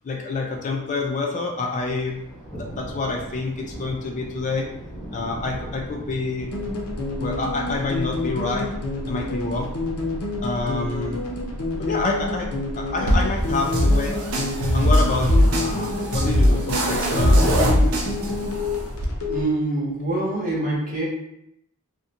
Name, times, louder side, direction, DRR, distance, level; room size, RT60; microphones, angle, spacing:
voice 1, 0.0-2.2 2.5-4.7 5.1-6.5 7.2-8.7 9.1-9.7 10.4-11.2 11.7-14.1 14.7-17.8, left 3 dB, 35° left, 0 dB, 0.3 m, -27 dB
Thunder, 1.8-17.7, right 1 dB, 5° right, 0.9 m, -42 dB
sound 1, 6.5-19.4, left 2 dB, 85° left, 0.5 m, -28 dB
sound 2, 13.1-19.0, equal, 70° right, 0.5 m, -20 dB
voice 2, 19.3-21.0, right 2 dB, 35° right, -4 dB, 0.8 m, -25 dB
2.5 x 2.0 x 2.7 m, 0.80 s
head